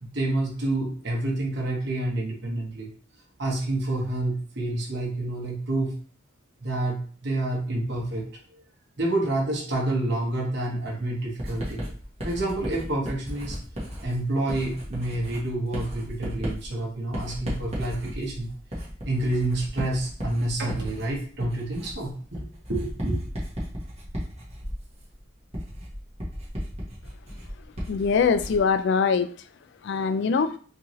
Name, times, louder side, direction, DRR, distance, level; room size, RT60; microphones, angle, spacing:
voice 1, 0.0-2.9 3.4-5.9 6.6-8.3 8.5-8.6 9.0-11.9 12.2-13.6 14.0-18.5 18.8-23.2, right 2 dB, 55° right, -2 dB, 1.1 m, -28 dB
Writing, 11.4-28.7, equal, 30° right, 1.2 m, -35 dB
voice 2, 27.9-29.3 29.8-30.5, left 5 dB, 60° left, 11 dB, 0.3 m, -22 dB
4.5 x 2.8 x 3.1 m, 0.43 s
head